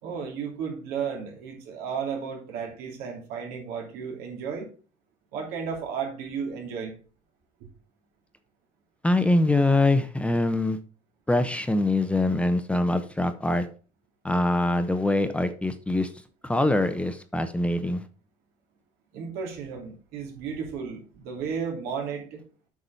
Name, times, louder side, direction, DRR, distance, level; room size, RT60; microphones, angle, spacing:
voice 1, 0.0-4.7 5.3-7.0 19.1-22.4, right 6 dB, 85° right, 1 dB, 3.2 m, -33 dB
voice 2, 9.0-10.8 11.3-13.7 14.2-16.1 16.5-18.0, left 2 dB, 10° left, 9 dB, 0.8 m, -23 dB
8.2 x 4.8 x 5.7 m, 0.38 s
cardioid pair, 120°, 16 cm